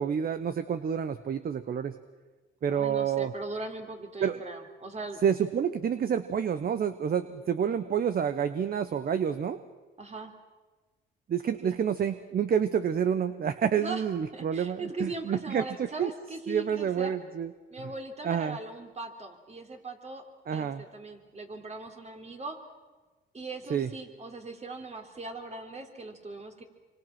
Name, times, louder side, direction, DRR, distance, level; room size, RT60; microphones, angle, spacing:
voice 1, 0.0-2.0 2.6-3.3 4.2-4.4 5.2-9.6 11.3-16.1 16.5-17.5 18.2-18.6 20.5-20.8 23.7-23.9, right 8 dB, 50° right, 11 dB, 1.0 m, -28 dB
voice 2, 2.7-5.2 10.0-10.3 11.6-11.8 13.8-14.0 14.3-17.2 17.7-20.2 20.5-22.6 23.3-26.6, right 2 dB, 35° right, 4 dB, 3.5 m, -39 dB
26.0 x 25.0 x 6.1 m, 1.3 s
cardioid pair, 90°, 20 cm